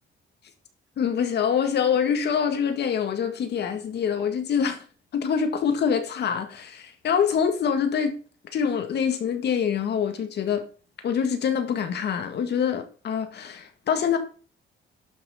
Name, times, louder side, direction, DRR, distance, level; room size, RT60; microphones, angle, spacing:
voice 1, 1.0-4.8 5.1-8.2 8.5-10.7 11.0-14.2, left 7 dB, 55° left, 1.9 m, -25 dB
11.5 x 6.2 x 5.7 m
cardioid pair, 170°, 20 cm